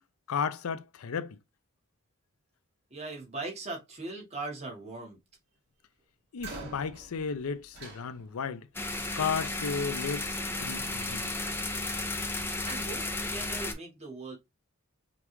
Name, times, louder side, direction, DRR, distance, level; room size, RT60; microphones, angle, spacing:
voice 1, 0.3-1.4 6.3-8.7 9.1-11.3, left 6 dB, 90° left, 0.5 m, -34 dB
voice 2, 2.9-5.2 12.6-14.4, right 3 dB, 30° right, 1.2 m, -39 dB
sound 1, 6.4-8.7 9.8-10.1 10.5-12.2, right 3 dB, 50° right, 2.1 m, -48 dB
sound 2, 8.7-13.7, left 2 dB, 10° left, 0.4 m, -33 dB
5.2 x 2.3 x 3.0 m
head